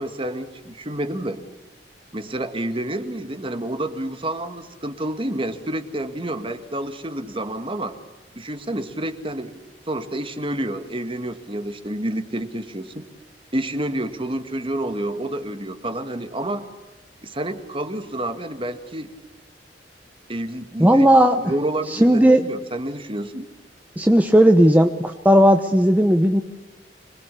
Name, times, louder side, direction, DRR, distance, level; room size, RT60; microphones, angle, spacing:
voice 1, 0.0-1.4 2.1-8.0 8.4-9.6 9.9-13.0 13.5-16.7 17.2-19.1 20.3-21.1 21.4-23.5, right 1 dB, 30° right, 8 dB, 1.9 m, -29 dB
voice 2, 20.8-21.4 21.9-22.4 24.0-26.4, equal, 10° right, 5 dB, 1.0 m, -15 dB
26.0 x 21.0 x 8.4 m, 1.1 s
head